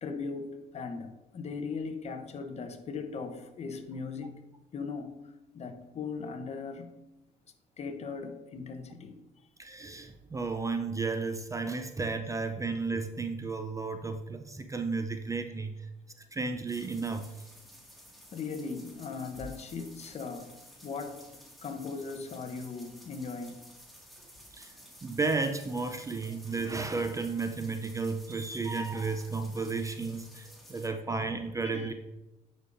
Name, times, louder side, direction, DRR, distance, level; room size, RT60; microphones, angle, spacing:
voice 1, 0.0-4.4 4.7-6.9 7.8-9.2 18.3-20.6 20.8-23.6 29.6-29.7 31.6-31.9, left 4 dB, 40° left, 0.7 m, -39 dB
voice 2, 9.6-15.7 16.3-17.2 24.6-24.7 25.0-31.9, right 4 dB, 20° right, 0.4 m, -33 dB
sound 1, 16.7-30.9, equal, ahead, 1.8 m, -53 dB
sound 2, 19.3-20.3, left 2 dB, 35° right, 2.2 m, -49 dB
9.6 x 5.3 x 2.5 m
cardioid pair, 110°, 17 cm